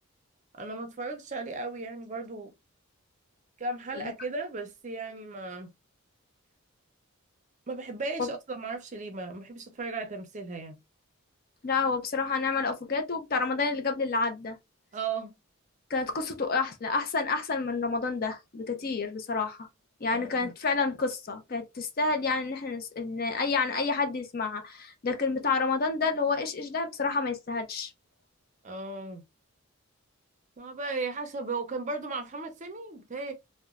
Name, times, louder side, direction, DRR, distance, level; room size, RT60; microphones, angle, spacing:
voice 1, 0.6-2.5 3.6-5.7 7.7-10.8 14.9-15.3 20.1-20.5 28.6-29.2 30.6-33.3, right 3 dB, 35° right, 0.5 m, -36 dB
voice 2, 11.6-14.6 15.9-19.7 20.0-27.9, left 4 dB, 45° left, 0.5 m, -29 dB
2.8 x 2.1 x 2.3 m
head